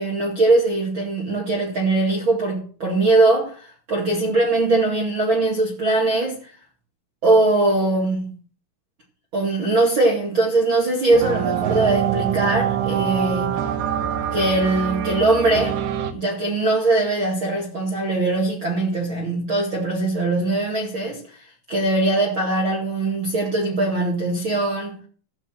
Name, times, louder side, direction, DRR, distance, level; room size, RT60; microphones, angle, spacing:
voice 1, 0.0-6.5 7.2-8.4 9.3-13.6 14.3-15.8 16.1-25.0, right 2 dB, 50° right, 1.4 m, -21 dB
sound 1, 11.1-16.1, right 9 dB, 75° right, 2.7 m, -24 dB
14.5 x 5.0 x 7.5 m
omnidirectional pair, 5.9 m